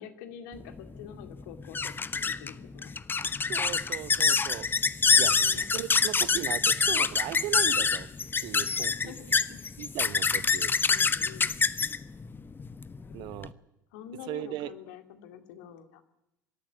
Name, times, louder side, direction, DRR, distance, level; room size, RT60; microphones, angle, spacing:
voice 1, 0.0-2.9 5.1-5.7 8.9-9.6 10.9-11.6 13.1-13.3 13.9-16.0, left 8 dB, 65° left, 8 dB, 2.4 m, -47 dB
sound 1, 0.6-13.5, left 5 dB, 20° left, 0.9 m, -26 dB
voice 2, 3.5-4.7 5.1-8.1 8.4-9.1 9.8-10.7 13.1-13.5 14.3-14.7, right 14 dB, 50° right, 16 dB, 1.1 m, -37 dB
25.0 x 13.5 x 9.9 m, 0.89 s
figure-of-eight pair, 65°, 10 cm